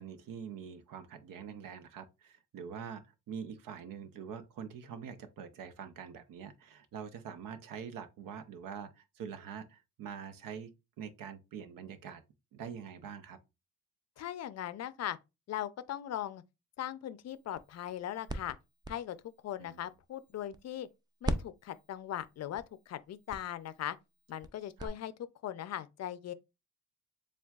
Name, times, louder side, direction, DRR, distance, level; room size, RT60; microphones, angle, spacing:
voice 1, 0.0-10.7 11.0-12.2 12.5-13.4 19.6-19.8 24.8-24.9, right 7 dB, 80° right, 0.7 m, -45 dB
voice 2, 14.2-15.2 15.5-16.4 16.8-18.6 18.9-19.2 19.4-20.9 21.2-24.0 24.3-25.1 25.4-26.3, left 11 dB, 55° left, 0.5 m, -39 dB
sound 1, 17.3-20.9 21.2-24.9, right 2 dB, 15° right, 0.4 m, -42 dB
6.9 x 2.3 x 2.4 m
cardioid pair, 100°, 33 cm